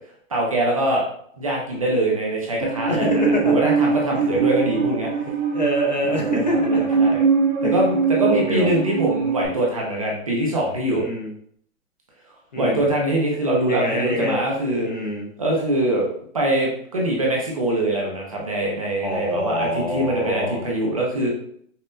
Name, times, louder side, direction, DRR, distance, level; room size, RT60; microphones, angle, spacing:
voice 1, 0.3-1.0 1.4-5.1 6.1-7.2 7.6-11.0 12.6-14.9 15.4-21.3, right 1 dB, 30° right, -3 dB, 0.4 m, -23 dB
Musical instrument, 2.6-9.5, right 5 dB, 70° right, 0.8 m, -22 dB
voice 2, 2.9-3.7 4.1-4.3 5.5-7.0 7.6-7.7 8.2-8.7 10.9-11.3 12.5-12.9 13.7-14.4 14.8-15.3 19.0-20.6, equal, 35° left, 0 dB, 0.4 m, -26 dB
5.5 x 2.0 x 2.5 m, 0.65 s
hypercardioid pair, 170°, 40 cm